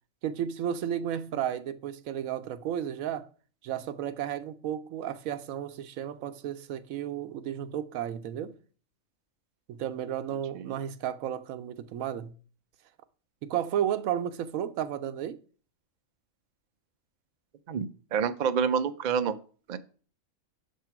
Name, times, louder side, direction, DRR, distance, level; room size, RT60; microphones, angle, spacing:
voice 1, 0.2-3.3 3.6-8.6 9.7-12.4 13.4-15.4, right 10 dB, 85° right, 1.0 m, -33 dB
voice 2, 17.7-19.3 19.7-19.8, right 7 dB, 70° right, 0.4 m, -28 dB
6.9 x 2.9 x 5.7 m
omnidirectional pair, 1.4 m